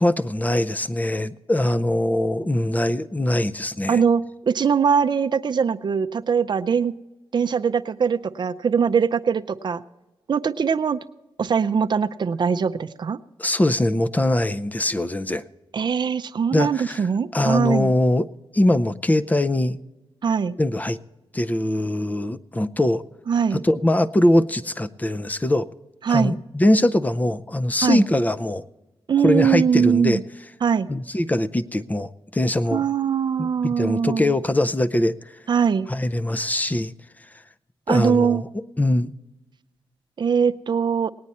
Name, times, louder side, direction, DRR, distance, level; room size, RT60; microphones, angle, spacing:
voice 1, 0.0-4.0 13.4-15.4 16.5-17.0 17.3-18.3 18.5-19.8 20.6-21.0 21.3-23.0 23.5-25.7 26.1-28.6 29.2-30.2 30.9-32.8 33.4-35.1 35.9-36.9 37.9-38.5 38.8-39.1, left 1 dB, 15° left, 14 dB, 0.5 m, -22 dB
voice 2, 3.9-6.9 7.3-9.8 10.3-11.0 11.4-13.2 15.7-17.9 20.2-20.5 23.3-23.6 26.0-26.3 27.8-28.0 29.1-30.2 30.6-30.9 32.7-34.4 35.5-35.9 37.9-38.4 40.2-41.1, right 6 dB, 55° right, 9 dB, 0.5 m, -21 dB
19.0 x 9.5 x 4.2 m, 1.1 s
cardioid pair, 80°, 9 cm